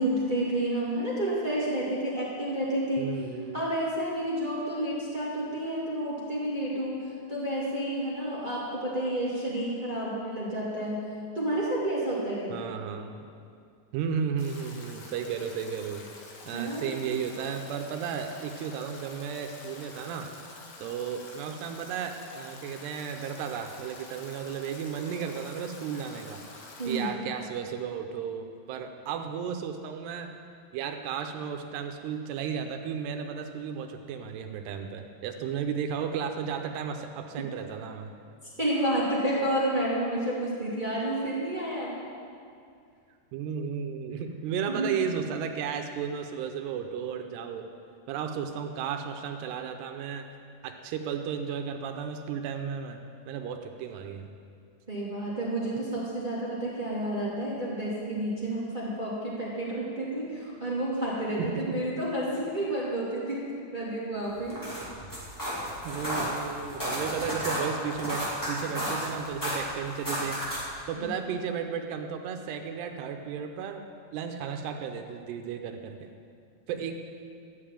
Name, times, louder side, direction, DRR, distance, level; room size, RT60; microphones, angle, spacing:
voice 1, 0.0-3.2 3.5-11.0 11.3-12.6 16.5-16.9 26.8-27.2 38.6-42.0 44.7-44.9 54.9-64.6 70.9-71.1, right 1 dB, 25° right, -6 dB, 1.1 m, -30 dB
voice 2, 3.0-3.6 12.5-13.3 13.9-16.0 16.5-20.3 20.8-26.4 26.9-30.3 30.7-38.1 43.3-47.7 48.1-50.3 50.6-53.0 53.3-54.3 61.4-61.8 65.9-73.8 74.1-76.1 76.7-77.0, right 7 dB, 85° right, 5 dB, 2.7 m, -34 dB
Stream / Drip / Trickle dribble, 14.4-27.0, left 3 dB, 70° left, 3.5 m, -47 dB
sound 1, 64.4-70.8, equal, 5° left, 1.8 m, -33 dB
13.5 x 6.8 x 9.0 m, 2.3 s
omnidirectional pair, 5.0 m